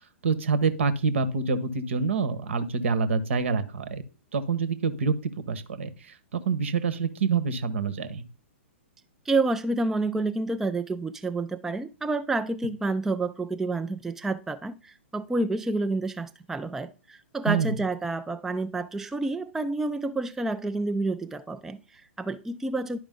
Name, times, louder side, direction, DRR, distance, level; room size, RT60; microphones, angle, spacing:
voice 1, 0.2-4.0 4.3-8.2 17.5-17.8, right 5 dB, 65° right, 1.1 m, -26 dB
voice 2, 9.3-23.0, right 2 dB, 5° right, 0.3 m, -29 dB
11.0 x 4.9 x 3.6 m
figure-of-eight pair, 115°, 7 cm